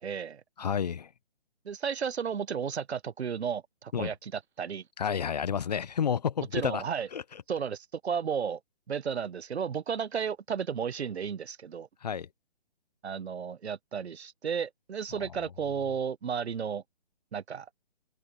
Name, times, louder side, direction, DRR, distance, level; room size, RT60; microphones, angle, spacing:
voice 1, 0.0-0.4 1.6-4.8 6.5-7.1 7.5-8.6 8.9-11.9 13.0-16.8 17.3-17.7, right 7 dB, 80° right, 0.9 m, -33 dB
voice 2, 0.6-1.1 3.9-4.1 5.0-6.8 7.1-7.2 12.0-12.3, left 7 dB, 40° left, 0.5 m, -30 dB
hypercardioid pair, 155°, 32 cm